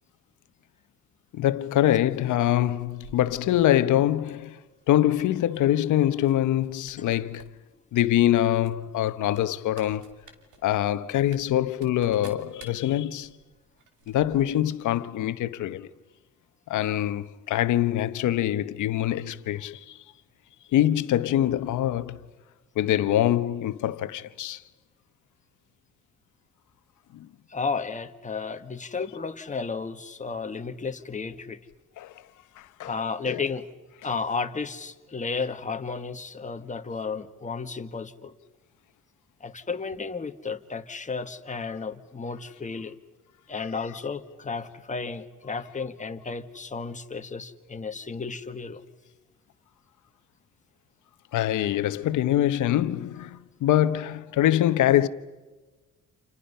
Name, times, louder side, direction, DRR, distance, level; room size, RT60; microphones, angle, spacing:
voice 1, 1.3-4.6 4.9-7.5 7.9-10.1 10.6-13.3 14.1-15.9 16.7-20.0 20.7-22.2 22.8-24.6 27.1-27.3 32.0-32.1 32.6-33.0 33.3-33.4 51.3-55.1, left 12 dB, 80° left, 1.1 m, -24 dB
sound 1, 2.1-3.7 4.2-4.5 4.8-5.6 6.2-6.3 6.6-7.5 7.8-7.9 8.6-14.7 15.0-15.1, right 6 dB, 80° right, 3.2 m, -53 dB
voice 2, 27.5-31.6 32.8-33.6 34.0-38.3 39.4-42.9 43.5-48.8, left 4 dB, 25° left, 1.6 m, -33 dB
30.0 x 28.0 x 5.6 m
cardioid pair, 90°, 30 cm